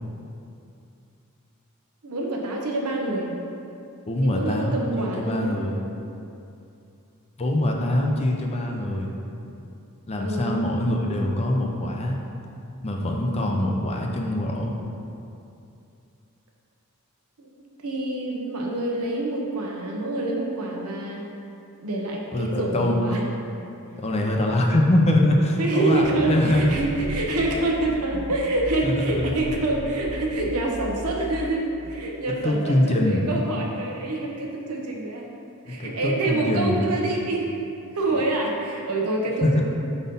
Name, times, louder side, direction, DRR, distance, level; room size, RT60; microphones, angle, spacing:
voice 1, 2.0-3.3 4.2-5.6 10.2-10.6 17.4-17.5 17.8-21.2 21.8-23.2 25.6-35.2 35.7-37.5 37.9-39.6, right 2 dB, 80° right, -1 dB, 0.9 m, -26 dB
voice 2, 4.1-5.8 7.4-9.1 10.1-12.2 12.8-14.8 22.3-23.0 24.0-26.7 27.8-28.3 28.8-29.4 32.3-33.2 35.7-36.9 38.1-38.2 39.4-39.6, left 1 dB, 30° left, 1 dB, 0.6 m, -23 dB
sound 1, 26.0-31.5, equal, 45° right, 0.9 m, -36 dB
5.3 x 4.1 x 5.3 m, 2.7 s
head